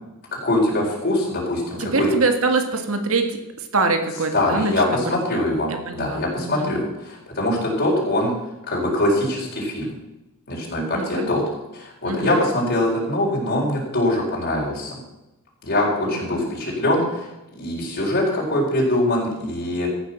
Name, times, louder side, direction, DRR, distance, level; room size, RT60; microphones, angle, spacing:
voice 1, 0.4-2.1 4.3-8.3 8.7-9.9 10.5-11.4 11.7-15.0 15.6-17.3 17.6-19.9, left 1 dB, 50° left, -4 dB, 4.4 m, -23 dB
voice 2, 1.8-5.4 5.7-6.8 10.9-11.3 12.0-12.4 16.0-16.5, right 3 dB, 70° right, 6 dB, 1.8 m, -25 dB
15.5 x 9.2 x 5.9 m, 0.94 s
head